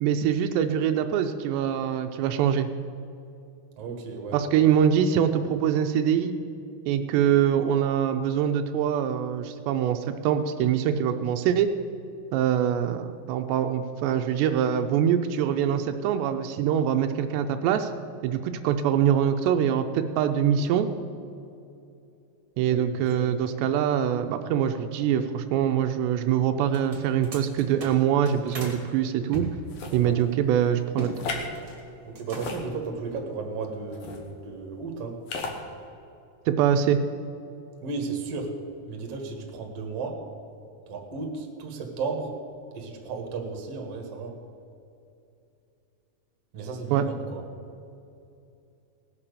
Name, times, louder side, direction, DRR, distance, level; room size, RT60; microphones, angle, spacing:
voice 1, 0.0-2.7 4.3-6.4 6.9-11.7 12.3-17.9 18.2-20.9 22.6-29.5 29.9-31.1 36.5-37.0 46.9-47.0, right 9 dB, 85° right, 7 dB, 2.8 m, -24 dB
voice 2, 3.8-4.6 22.7-23.3 29.8-30.2 32.0-35.2 37.8-38.6 38.9-40.2 40.9-42.3 42.7-44.4 46.5-47.4, right 4 dB, 50° right, 2 dB, 1.9 m, -34 dB
sound 1, 26.6-28.8 29.3-31.2 31.4-31.8 32.1-32.7, right 2 dB, 30° right, 1.9 m, -39 dB
sound 2, 29.7-30.0 31.1-31.5 32.3-33.1 33.9-34.2 35.3-35.6, left 4 dB, 70° left, 1.6 m, -34 dB
18.5 x 7.2 x 6.8 m, 2.7 s
omnidirectional pair, 5.0 m